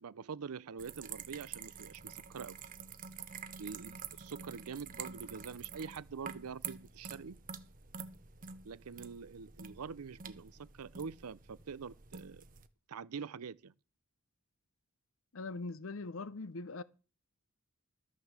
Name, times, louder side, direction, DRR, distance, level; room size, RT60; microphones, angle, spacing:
voice 1, 0.0-2.6 3.6-7.4 8.6-12.4 12.9-13.7, right 6 dB, 90° right, 0.6 m, -45 dB
sound 1, 0.8-12.7, right 7 dB, 40° right, 0.8 m, -48 dB
voice 2, 15.3-16.8, left 3 dB, 65° left, 0.7 m, -41 dB
13.0 x 6.4 x 7.3 m
head